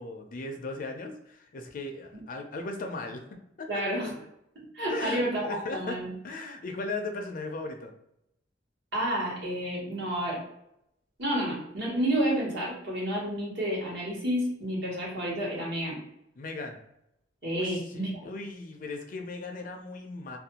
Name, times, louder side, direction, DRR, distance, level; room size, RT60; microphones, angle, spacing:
voice 1, 0.0-3.8 4.9-6.0 6.2-7.9 16.4-16.8 17.5-20.4, left 2 dB, 45° left, 4 dB, 0.4 m, -37 dB
voice 2, 3.7-4.1 4.7-6.1 8.9-10.4 11.2-16.0 17.4-18.2, equal, 65° right, -5 dB, 1.1 m, -30 dB
2.5 x 2.2 x 2.8 m, 0.79 s
head